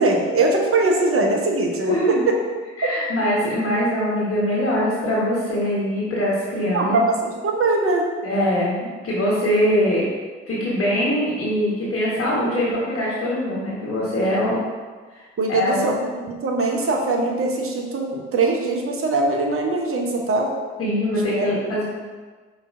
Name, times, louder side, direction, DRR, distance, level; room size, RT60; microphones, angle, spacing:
voice 1, 0.0-1.9 6.7-8.1 14.2-14.4 15.4-20.5 21.3-21.5, right 2 dB, 40° right, 1 dB, 1.0 m, -21 dB
voice 2, 1.8-2.2 2.8-7.0 8.2-8.7 9.0-10.0 10.5-14.6 15.1-15.2 15.5-15.9 20.8-21.8, equal, 40° left, -6 dB, 1.4 m, -22 dB
5.0 x 4.0 x 2.6 m, 1.4 s
hypercardioid pair, 45°, 34 cm